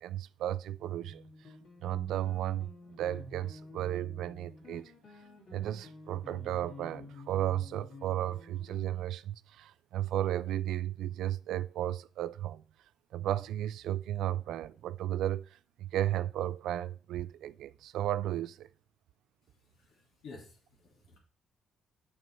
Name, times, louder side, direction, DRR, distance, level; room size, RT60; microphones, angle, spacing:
voice 1, 0.0-1.5 1.8-4.9 5.5-12.6 13.1-18.7, right 12 dB, 80° right, 0.3 m, -34 dB
sound 1, 0.8-9.1, left 3 dB, 60° left, 2.6 m, -51 dB
voice 2, 19.4-21.2, left 3 dB, 80° left, 2.3 m, -53 dB
6.3 x 5.4 x 4.4 m
cardioid pair, 90°, 0 cm